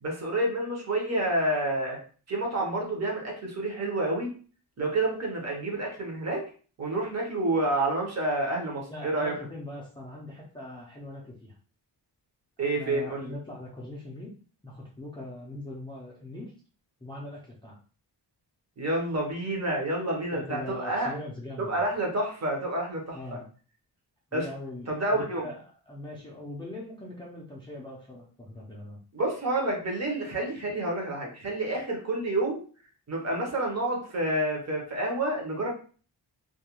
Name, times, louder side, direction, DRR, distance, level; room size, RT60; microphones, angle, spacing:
voice 1, 0.0-2.0 2.3-4.3 4.8-6.4 6.8-9.3 12.6-13.3 18.8-21.1 21.6-23.2 24.3-24.4 24.9-25.5 29.1-32.6 33.1-35.7, right 1 dB, 40° right, 0 dB, 0.7 m, -29 dB
voice 2, 8.7-11.6 12.6-14.3 14.6-16.5 17.0-17.8 20.3-21.8 23.1-23.5 24.3-29.0, left 1 dB, 15° left, -4 dB, 0.3 m, -41 dB
2.3 x 2.1 x 2.8 m, 0.39 s
wide cardioid pair, 180°, 41 cm